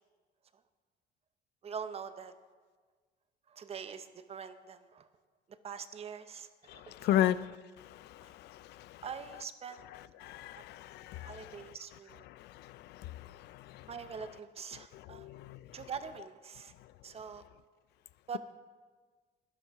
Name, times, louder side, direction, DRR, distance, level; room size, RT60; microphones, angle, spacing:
voice 1, 1.6-2.3 3.5-5.1 5.6-7.3 8.2-8.3 9.0-9.9 10.6-10.7 11.2-12.3 13.9-15.3 15.7-16.7 17.0-17.4 18.3-18.4, right 6 dB, 35° right, 11 dB, 0.8 m, -44 dB
voice 2, 7.0-7.4 10.2-11.5 15.2-15.6, left 12 dB, 75° left, 16 dB, 0.5 m, -31 dB
12.5 x 11.0 x 4.8 m, 1.5 s
cardioid pair, 110°, 17 cm